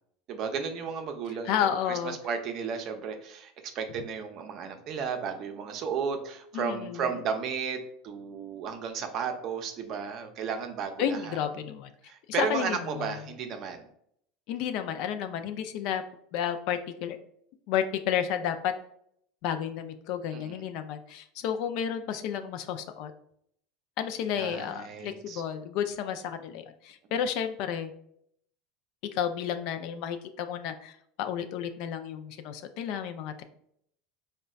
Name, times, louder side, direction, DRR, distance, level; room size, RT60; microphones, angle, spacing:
voice 1, 0.3-1.6 1.9-11.4 12.1-13.9 20.3-20.6 24.3-25.4, right 6 dB, 50° right, 6 dB, 0.5 m, -34 dB
voice 2, 1.4-2.2 6.5-7.1 11.0-11.9 12.4-13.1 14.5-16.0 16.3-17.2 17.7-18.7 19.4-23.1 24.0-27.9 29.1-33.4, left 9 dB, 65° left, 8 dB, 0.3 m, -31 dB
3.9 x 2.1 x 2.3 m, 0.68 s
supercardioid pair, 105°, 0 cm